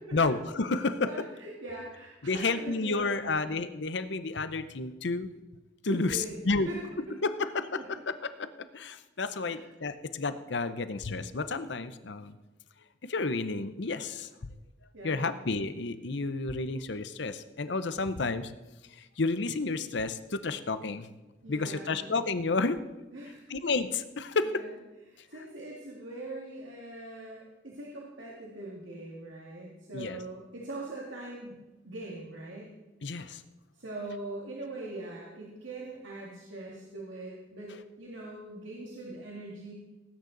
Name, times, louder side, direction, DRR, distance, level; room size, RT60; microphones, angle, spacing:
voice 1, 0.1-1.3 2.2-5.3 5.8-6.7 7.2-12.4 13.0-14.5 15.0-18.5 19.0-21.1 21.5-22.8 23.5-24.6 25.3-25.4 29.9-30.2 33.0-33.4, left 3 dB, 65° left, 12 dB, 0.7 m, -31 dB
voice 2, 1.1-3.5 5.8-6.4 6.7-6.8 9.4-9.7 14.9-15.4 21.4-22.1 23.1-23.4 24.4-24.7 25.1-32.7 33.8-39.7, right 2 dB, 80° right, -3 dB, 2.1 m, -42 dB
18.5 x 9.3 x 4.0 m, 1.1 s
head